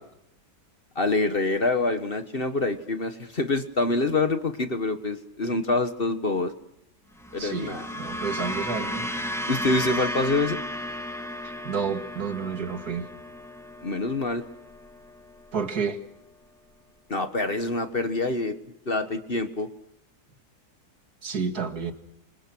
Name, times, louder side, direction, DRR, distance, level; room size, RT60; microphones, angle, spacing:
voice 1, 0.9-6.5 7.3-7.9 9.5-10.6 13.8-14.4 17.1-18.6 18.9-19.7, left 2 dB, 35° left, 1.6 m, -26 dB
sound 1, 7.2-15.6, left 1 dB, ahead, 1.8 m, -34 dB
voice 2, 7.4-9.1 11.4-13.1 15.5-16.0 21.2-21.9, right 6 dB, 75° right, 2.7 m, -30 dB
27.0 x 26.0 x 6.3 m
omnidirectional pair, 1.7 m